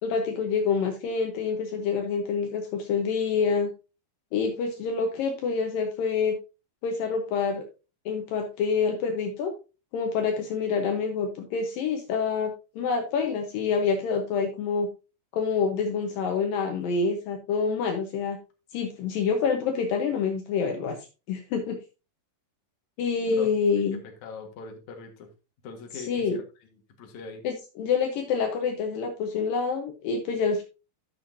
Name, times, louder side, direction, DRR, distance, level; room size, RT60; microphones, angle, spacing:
voice 1, 0.0-3.7 4.3-6.4 6.8-7.6 8.1-9.5 9.9-14.9 15.3-18.4 18.7-21.0 21.3-21.8 23.0-24.0 26.1-26.4 27.4-30.6, left 5 dB, 85° left, 4 dB, 2.0 m, -27 dB
voice 2, 24.0-25.3 25.6-27.4, left 5 dB, 60° left, 3 dB, 2.0 m, -41 dB
11.5 x 7.1 x 2.7 m, 0.30 s
omnidirectional pair, 5.6 m